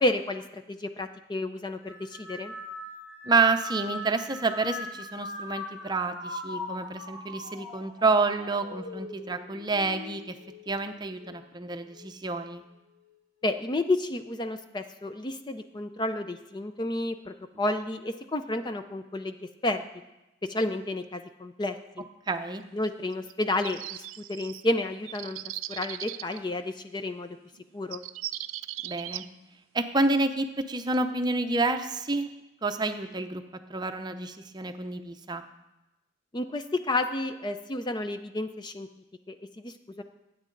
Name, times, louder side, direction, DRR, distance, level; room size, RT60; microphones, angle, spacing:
voice 1, 0.0-2.5 13.4-19.4 19.6-19.8 20.5-22.1 22.7-25.4 25.7-27.4 27.7-28.0 36.3-38.9 39.3-40.0, left 2 dB, 20° left, 8 dB, 0.4 m, -31 dB
sound 1, 1.8-11.4 11.9-12.5 13.4-13.8, left 2 dB, 70° left, 2.6 m, -41 dB
voice 2, 3.3-10.4 10.7-12.6 22.3-22.6 28.8-29.2 29.7-32.3 32.6-33.4 33.7-35.4, right 3 dB, 20° right, 8 dB, 0.6 m, -28 dB
sound 2, 23.1-24.6 25.0-26.4 27.5-27.6 27.9-29.3, right 14 dB, 85° right, 0.4 m, -38 dB
20.5 x 9.2 x 3.9 m, 0.98 s
head